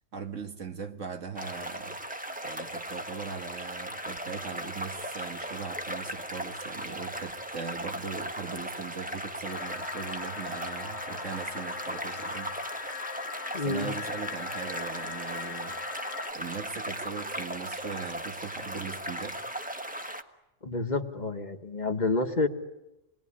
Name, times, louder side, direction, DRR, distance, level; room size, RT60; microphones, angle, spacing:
voice 1, 0.1-2.0 2.4-12.5 13.6-15.8 16.3-19.4, right 5 dB, 70° right, 2.1 m, -39 dB
sound 1, 1.4-20.2, right 1 dB, 5° right, 1.2 m, -37 dB
sound 2, 9.4-16.3, left 6 dB, 60° left, 1.4 m, -40 dB
voice 2, 13.5-13.9 20.6-22.5, left 3 dB, 35° left, 1.6 m, -29 dB
28.0 x 21.0 x 10.0 m
omnidirectional pair, 1.3 m